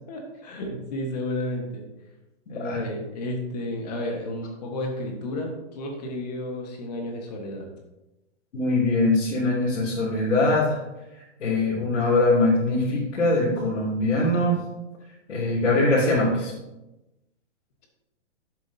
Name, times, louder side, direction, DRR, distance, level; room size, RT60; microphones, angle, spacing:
voice 1, 0.1-1.9 2.5-7.7, left 1 dB, 35° left, 2 dB, 1.5 m, -32 dB
voice 2, 8.5-10.8 11.4-14.6 15.3-16.5, left 2 dB, 80° left, -7 dB, 2.9 m, -22 dB
12.0 x 7.6 x 2.8 m, 0.99 s
hypercardioid pair, 170°, 36 cm